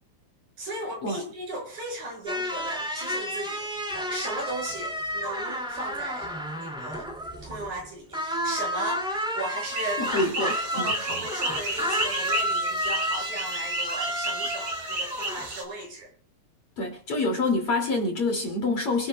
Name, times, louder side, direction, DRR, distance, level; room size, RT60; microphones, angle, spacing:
voice 1, 0.6-7.1 7.4-9.1 9.3-16.1, right 1 dB, 55° right, 7.8 m, -36 dB
sound 1, 2.3-7.8 8.1-15.5, equal, ahead, 1.7 m, -31 dB
sound 2, 9.6-15.6, right 2 dB, 35° right, 3.7 m, -32 dB
voice 2, 10.0-10.9 16.8-19.1, left 2 dB, 45° left, 3.3 m, -26 dB
27.5 x 12.5 x 2.3 m
omnidirectional pair, 4.1 m